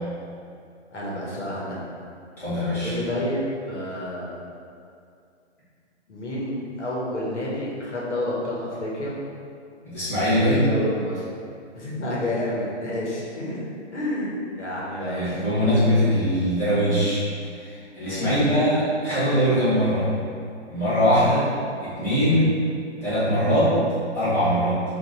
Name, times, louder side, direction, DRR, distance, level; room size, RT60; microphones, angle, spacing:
voice 1, 0.9-1.9 2.8-4.4 6.1-9.2 10.5-11.3 11.7-13.6 13.9-14.3 14.6-15.4 18.0-18.3, left 1 dB, 75° left, -5 dB, 1.1 m, -29 dB
voice 2, 2.4-2.9 9.8-10.7 15.0-17.2 17.6-20.1 20.7-21.5 21.8-22.6 23.0-23.8 24.1-24.8, equal, 5° left, -16 dB, 1.2 m, -21 dB
2.9 x 2.5 x 4.0 m, 2.4 s
hypercardioid pair, 145°, 35 cm